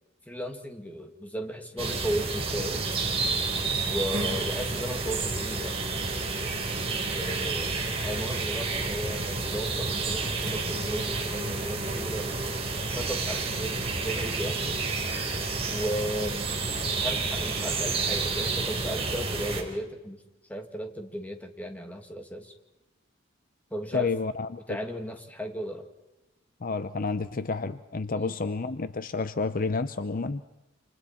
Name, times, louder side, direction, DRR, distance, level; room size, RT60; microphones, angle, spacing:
voice 1, 0.3-2.9 3.8-5.8 7.1-7.8 8.0-12.5 12.9-14.8 15.7-16.5 16.8-20.2 20.5-22.5 23.7-24.1 24.7-25.9 28.2-28.4, equal, 10° left, 4 dB, 2.2 m, -35 dB
sound 1, 1.8-19.6, right 3 dB, 30° right, 3.7 m, -30 dB
voice 2, 23.9-24.6 26.6-30.5, left 4 dB, 50° left, 12 dB, 0.7 m, -30 dB
28.5 x 27.0 x 4.4 m, 0.99 s
head